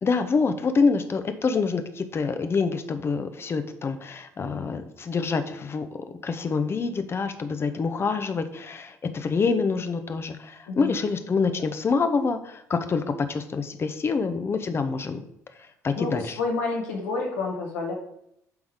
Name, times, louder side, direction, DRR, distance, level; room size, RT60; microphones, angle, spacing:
voice 1, 0.0-13.0 13.3-15.2 15.8-16.4, left 4 dB, 30° left, 9 dB, 0.7 m, -26 dB
voice 2, 16.0-17.9, left 3 dB, 70° left, 0 dB, 1.5 m, -29 dB
8.1 x 3.6 x 5.0 m, 0.75 s
figure-of-eight pair, 55°, 8 cm